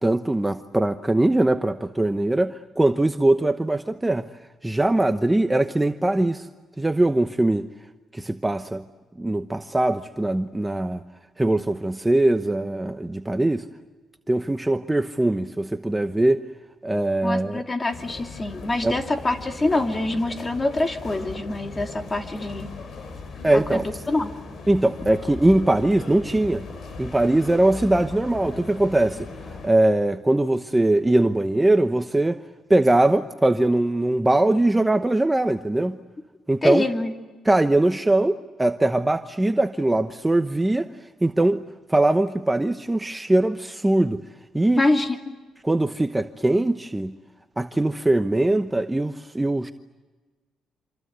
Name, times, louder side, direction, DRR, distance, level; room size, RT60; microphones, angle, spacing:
voice 1, 0.0-4.3 4.6-6.5 6.8-7.7 8.1-8.8 9.2-11.0 11.4-13.6 14.3-16.4 16.8-17.6 18.8-18.9 23.4-23.9 24.7-26.7 27.0-29.3 29.6-32.4 32.7-36.0 36.5-36.9 37.4-40.9 41.2-41.6 41.9-44.2 44.5-44.8 45.6-47.2 47.6-49.7, right 2 dB, 10° right, 0.9 m, -21 dB
voice 2, 17.2-22.7 23.5-24.3 36.6-37.1 44.8-45.3, left 2 dB, 25° left, 2.6 m, -25 dB
sound 1, 17.9-29.7, left 3 dB, 55° left, 4.4 m, -38 dB
27.0 x 26.0 x 8.1 m
cardioid pair, 90°, 0 cm